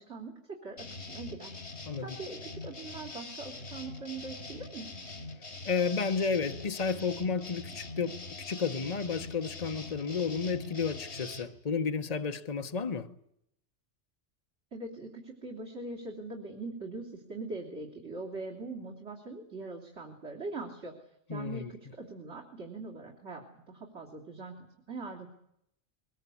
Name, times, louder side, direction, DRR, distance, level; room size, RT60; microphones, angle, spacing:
voice 1, 0.0-4.9 14.7-25.3, right 3 dB, 75° right, 3.5 m, -42 dB
sound 1, 0.8-11.5, left 3 dB, 70° left, 4.8 m, -43 dB
voice 2, 5.6-13.1 21.3-21.7, left 5 dB, 35° left, 1.1 m, -32 dB
23.0 x 20.5 x 8.4 m
omnidirectional pair, 1.2 m